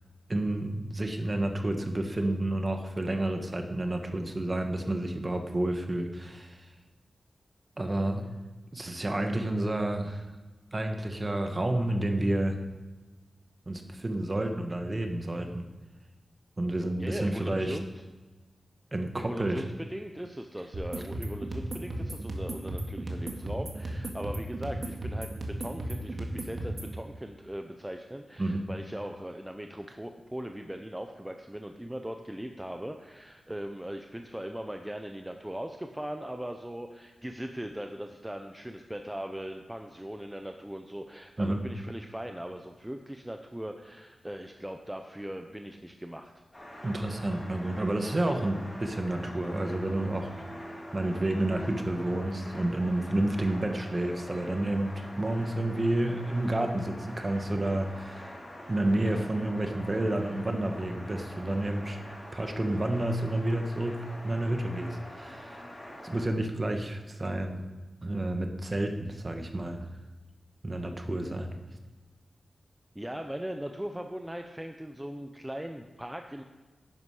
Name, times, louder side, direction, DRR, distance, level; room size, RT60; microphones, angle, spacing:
voice 1, 0.3-6.7 7.8-8.2 8.7-10.3 10.7-12.6 13.7-15.7 16.6-17.8 18.9-19.6 28.4-28.6 41.4-41.6 46.8-50.3 50.9-58.3 58.7-62.0 62.3-65.6 66.0-67.6 68.0-69.8 70.6-71.5, right 1 dB, 30° right, 5 dB, 1.2 m, -30 dB
voice 2, 17.0-17.9 19.2-46.3 73.0-76.4, equal, 10° right, 5 dB, 0.6 m, -39 dB
sound 1, 20.7-26.9, right 1 dB, 50° right, 1.8 m, -35 dB
sound 2, 46.5-66.3, left 1 dB, 20° left, 2.9 m, -45 dB
sound 3, 47.1-54.5, right 1 dB, 80° right, 3.1 m, -50 dB
11.5 x 9.8 x 4.9 m, 1.2 s
wide cardioid pair, 130°, 0 cm